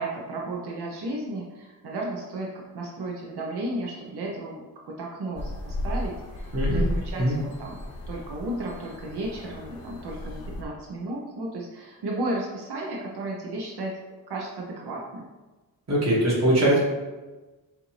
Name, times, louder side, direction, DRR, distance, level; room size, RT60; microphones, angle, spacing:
voice 1, 0.0-7.8 8.1-13.9 14.3-15.3, right 1 dB, 90° right, -2 dB, 0.8 m, -34 dB
sound 1, 5.4-10.6, left 1 dB, 65° left, 0.7 m, -33 dB
voice 2, 6.5-6.8 7.2-7.4 15.9-16.8, right 1 dB, 40° right, -5 dB, 1.3 m, -21 dB
6.4 x 2.5 x 3.2 m, 1.2 s
wide cardioid pair, 175°, 38 cm